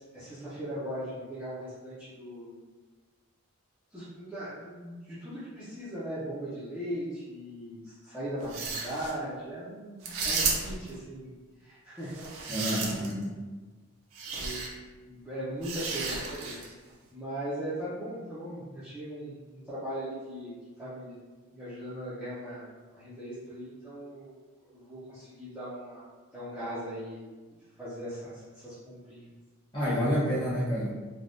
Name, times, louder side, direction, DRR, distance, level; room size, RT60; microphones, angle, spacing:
voice 1, 0.0-2.6 3.9-11.3 11.6-13.2 14.3-14.7 15.0-16.6 17.1-20.5 20.8-21.2 21.5-22.7 22.9-24.3 24.6-26.0 26.3-27.2 27.8-29.3, equal, 5° right, -13 dB, 0.5 m, -39 dB
sound 1, 8.4-9.1 10.0-10.9 12.1-13.2 14.1-14.7 15.6-16.7, right 4 dB, 65° right, 0.5 m, -33 dB
voice 2, 12.5-13.3 29.7-31.0, equal, 20° left, -10 dB, 1.0 m, -28 dB
3.3 x 2.2 x 2.5 m, 1.3 s
head